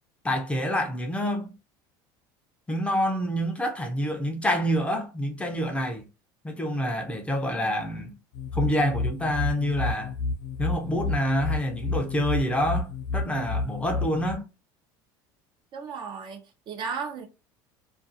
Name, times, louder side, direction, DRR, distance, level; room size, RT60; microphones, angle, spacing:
voice 1, 0.2-1.6 2.7-6.1 6.4-8.2 8.5-10.2 10.6-14.4, equal, 10° left, 0.5 m, -27 dB
sound 1, 8.3-14.4, left 3 dB, 75° left, 0.5 m, -30 dB
voice 2, 15.7-17.3, right 5 dB, 45° right, 0.6 m, -35 dB
2.4 x 2.3 x 2.5 m
supercardioid pair, 105°, 11 cm